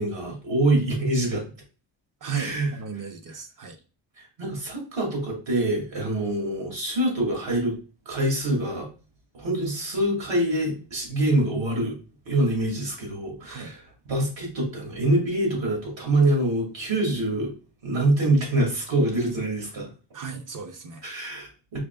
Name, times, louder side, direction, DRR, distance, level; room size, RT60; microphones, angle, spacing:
voice 1, 0.0-1.5 2.3-2.7 4.4-7.8 8.1-8.9 9.3-12.0 12.3-13.8 14.1-17.5 17.8-19.9 21.0-21.8, right 1 dB, 75° right, 2.0 m, -25 dB
voice 2, 2.2-3.8 13.5-13.7 20.1-21.0, right 6 dB, 45° right, 0.7 m, -35 dB
4.9 x 3.4 x 2.2 m
cardioid pair, 90°, 46 cm